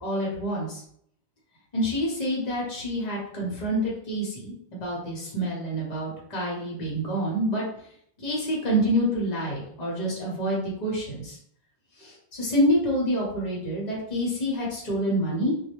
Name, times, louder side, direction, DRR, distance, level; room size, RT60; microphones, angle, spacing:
voice 1, 0.0-0.8 1.7-7.6 8.2-11.4 12.0-15.5, equal, 45° left, -4 dB, 0.9 m, -27 dB
2.3 x 2.1 x 2.9 m, 0.66 s
omnidirectional pair, 1.1 m